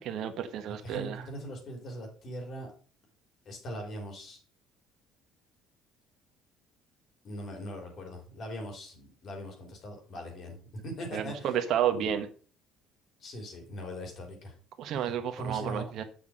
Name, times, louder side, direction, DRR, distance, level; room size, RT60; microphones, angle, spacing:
voice 1, 0.0-1.2 11.1-12.3 14.8-16.0, right 9 dB, 65° right, 9 dB, 1.3 m, -31 dB
voice 2, 0.7-2.7 3.5-4.4 7.2-10.6 10.8-11.6 11.9-12.1 13.2-14.5 15.4-15.9, equal, 55° left, 2 dB, 3.8 m, -40 dB
7.1 x 6.1 x 5.0 m, 0.39 s
supercardioid pair, 70°, 0 cm